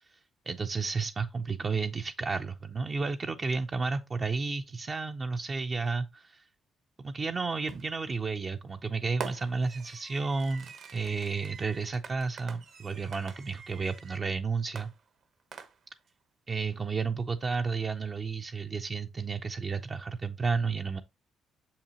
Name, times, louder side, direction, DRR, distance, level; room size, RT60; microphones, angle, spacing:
voice 1, 0.5-6.4 7.0-14.9 16.5-21.0, right 4 dB, 35° right, 0.5 m, -32 dB
Fireworks, 7.7-8.1 9.2-14.2 14.8-16.1, right 6 dB, 65° right, 0.9 m, -45 dB
6.6 x 5.7 x 2.8 m
cardioid pair, 90°, 0 cm